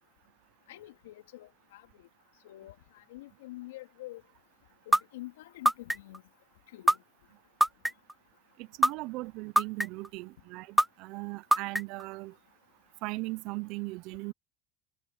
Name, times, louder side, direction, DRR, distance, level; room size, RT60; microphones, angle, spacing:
voice 1, 0.7-1.8 2.4-4.2 4.9-6.2 6.7-7.0, left 17 dB, 85° left, 3.7 m, -46 dB
sound 1, 4.9-5.0 5.7-6.2 6.9-7.0 7.6-8.1 8.8-8.9 9.6-10.1 10.8-10.9 11.5-12.0, right 1 dB, 5° right, 0.6 m, -22 dB
voice 2, 8.6-12.3 13.0-14.3, right 23 dB, 60° right, 0.9 m, -38 dB
supercardioid pair, 100°, 0 cm